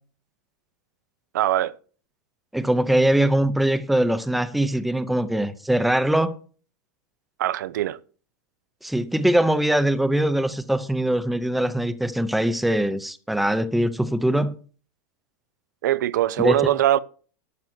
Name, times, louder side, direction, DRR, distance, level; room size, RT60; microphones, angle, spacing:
voice 1, 1.3-1.7 7.4-8.0 15.8-17.0, right 13 dB, 80° right, 0.6 m, -21 dB
voice 2, 2.5-6.4 8.8-14.5 16.4-16.6, right 1 dB, ahead, 0.5 m, -22 dB
12.0 x 6.7 x 6.0 m
supercardioid pair, 165°, 10 cm